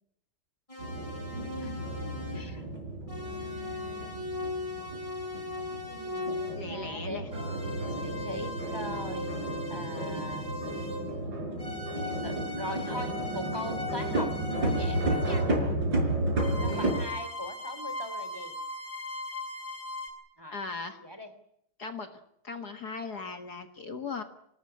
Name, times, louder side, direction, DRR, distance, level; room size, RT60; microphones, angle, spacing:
sound 1, 0.7-2.6 3.1-6.6 7.3-11.2 11.6-15.5 16.4-20.1, left 2 dB, 15° left, 7.4 m, -39 dB
sound 2, 0.8-17.1, right 1 dB, 60° right, 5.6 m, -32 dB
voice 1, 2.3-2.6 3.2-4.3 5.9-9.3 9.7-10.5 12.0-15.5 16.6-18.5 20.4-20.6 21.0-21.3, equal, 10° right, 9 dB, 2.9 m, -41 dB
voice 2, 6.6-7.3 16.7-17.0 20.5-21.0 21.8-22.1 22.4-24.2, left 4 dB, 50° left, 7 dB, 2.1 m, -38 dB
25.0 x 19.0 x 9.9 m, 0.74 s
omnidirectional pair, 2.3 m